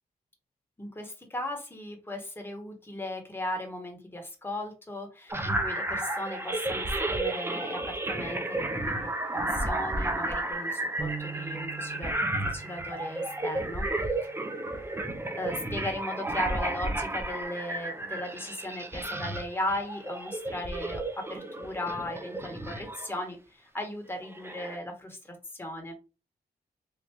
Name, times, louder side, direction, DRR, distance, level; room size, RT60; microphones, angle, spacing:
voice 1, 0.8-12.1 12.4-13.9 15.3-25.9, left 1 dB, 15° left, 2 dB, 1.1 m, -37 dB
sound 1, 5.3-23.2 24.2-24.8, right 1 dB, 15° right, 0.6 m, -32 dB
sound 2, 11.0-14.5, right 6 dB, 85° right, 1.1 m, -42 dB
3.3 x 2.5 x 3.0 m, 0.32 s
cardioid pair, 65°, 16 cm